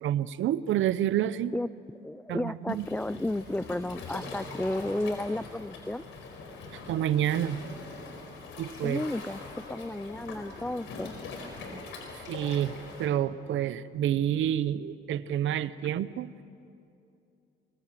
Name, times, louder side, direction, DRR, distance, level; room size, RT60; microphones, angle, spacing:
voice 1, 0.0-1.5 2.3-2.9 6.9-7.6 8.6-9.0 12.3-16.3, right 11 dB, 75° right, 16 dB, 0.8 m, -28 dB
voice 2, 2.0-6.0 8.8-11.2, left 1 dB, 5° left, 19 dB, 0.4 m, -33 dB
Waves surf, 2.7-13.1, left 3 dB, 90° left, 4.7 m, -42 dB
23.5 x 21.5 x 7.5 m, 2.6 s
cardioid pair, 90°, 20 cm